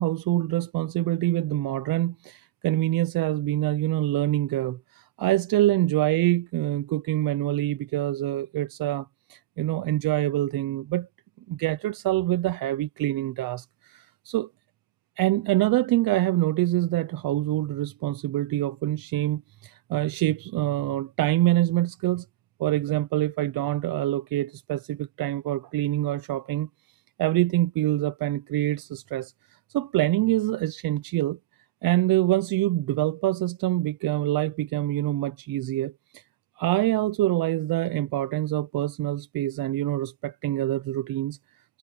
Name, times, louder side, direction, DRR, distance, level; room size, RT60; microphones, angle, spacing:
voice 1, 0.0-11.1 11.5-14.5 15.2-22.3 22.6-26.7 27.2-31.4 31.8-36.2 36.6-41.4, right 15 dB, 45° right, 0.7 m, -25 dB
cardioid pair, 135°, 48 cm